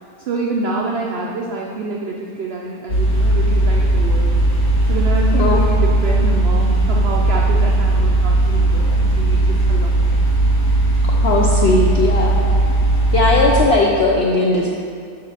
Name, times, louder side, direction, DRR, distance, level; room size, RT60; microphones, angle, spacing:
voice 1, 0.2-4.3 4.9-10.2 13.1-13.2, right 3 dB, 70° right, -1 dB, 0.5 m, -27 dB
sound 1, 2.9-13.7, right 2 dB, 60° left, 2.2 m, -16 dB
voice 2, 5.3-5.8 11.2-12.5 13.1-14.7, left 2 dB, 85° left, -2 dB, 0.5 m, -17 dB
5.1 x 5.1 x 5.6 m, 2.3 s
omnidirectional pair, 1.7 m